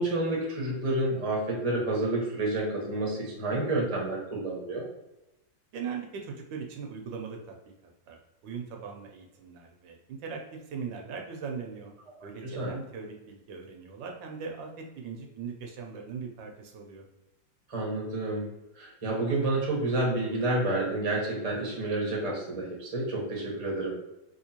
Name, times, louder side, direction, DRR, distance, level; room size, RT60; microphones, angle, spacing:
voice 1, 0.0-4.8 12.4-12.7 17.7-18.4 18.7-24.0, right 2 dB, 25° right, -3 dB, 0.8 m, -29 dB
voice 2, 5.7-7.7 8.1-11.9 12.2-17.1, right 6 dB, 80° right, 2 dB, 1.3 m, -40 dB
3.6 x 3.0 x 2.8 m, 0.93 s
omnidirectional pair, 2.0 m